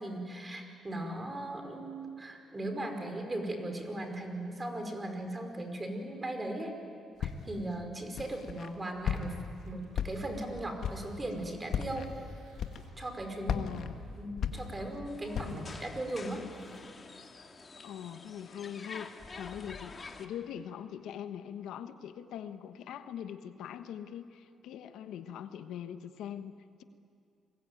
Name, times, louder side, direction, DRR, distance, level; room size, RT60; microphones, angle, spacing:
voice 1, 0.0-6.8 7.2-12.1 13.0-13.6 14.2-16.4, right 1 dB, 20° right, 5 dB, 5.1 m, -38 dB
Walk footsteps, 7.2-7.7 8.2-8.7 9.0-9.5 9.9-10.4 10.8-11.2 11.7-12.1 12.6-13.1 13.4-15.0 15.3-15.7, left 7 dB, 65° left, 1.7 m, -35 dB
sound 1, 9.6-16.8, right 2 dB, 75° right, 7.1 m, -58 dB
voice 2, 13.5-14.1 15.4-15.7 17.8-26.8, left 9 dB, 85° left, 9 dB, 1.2 m, -42 dB
sound 2, 15.1-20.3, left 4 dB, 35° left, 2.2 m, -48 dB
29.5 x 22.0 x 9.3 m, 2.4 s
cardioid pair, 90°, 0 cm